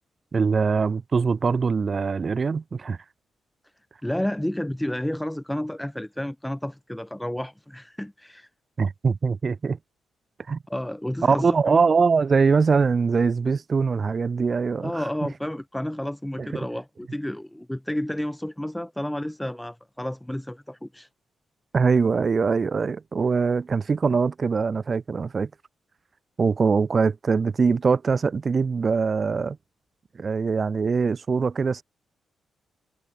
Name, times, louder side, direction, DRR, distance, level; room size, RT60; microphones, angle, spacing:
voice 1, 0.3-3.0 8.8-9.8 10.5-10.6 11.2-15.0 16.4-16.6 21.7-25.5 26.4-29.6 30.2-31.8, right 5 dB, 35° right, 3.5 m, -22 dB
voice 2, 4.0-8.5 10.7-11.8 14.8-21.1, left 1 dB, 5° left, 5.2 m, -31 dB
cardioid pair, 125°, 0 cm